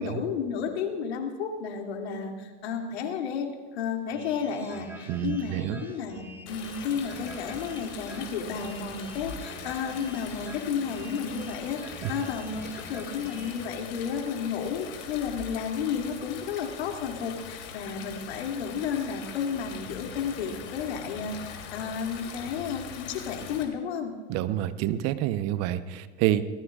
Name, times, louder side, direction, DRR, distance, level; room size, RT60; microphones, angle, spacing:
voice 1, 0.0-24.1, left 6 dB, 75° left, 2 dB, 2.6 m, -32 dB
sound 1, 4.1-13.5, right 1 dB, 5° right, 4.6 m, -45 dB
voice 2, 5.1-5.8 12.0-12.1 24.3-26.4, right 13 dB, 50° right, 12 dB, 1.0 m, -28 dB
Stream, 6.5-23.6, left 6 dB, 45° left, 3.3 m, -42 dB
26.0 x 18.5 x 2.5 m, 1.4 s
hypercardioid pair, 95°, 33 cm